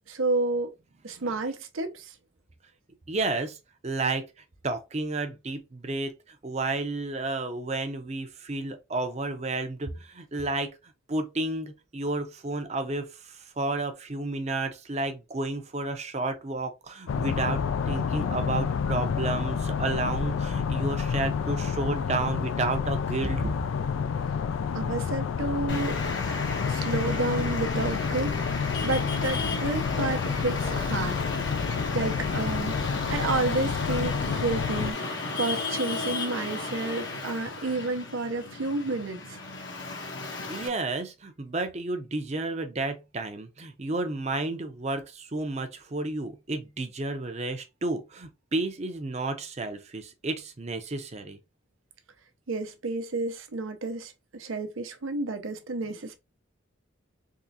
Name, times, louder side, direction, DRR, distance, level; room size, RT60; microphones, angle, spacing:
voice 1, 0.1-0.7 1.0-2.1 24.7-26.0 26.7-28.5 28.8-31.2 31.9-39.2 52.5-56.2, right 2 dB, 85° right, 0.7 m, -30 dB
voice 2, 3.1-3.6 3.8-4.3 4.6-10.7 11.1-23.5 40.5-51.4, right 2 dB, 35° right, 0.6 m, -31 dB
sound 1, 17.1-34.9, left 6 dB, 80° left, 0.3 m, -29 dB
Traffic noise roadway noise, 25.7-40.7, left 3 dB, 65° left, 1.0 m, -34 dB
3.7 x 3.1 x 2.7 m
head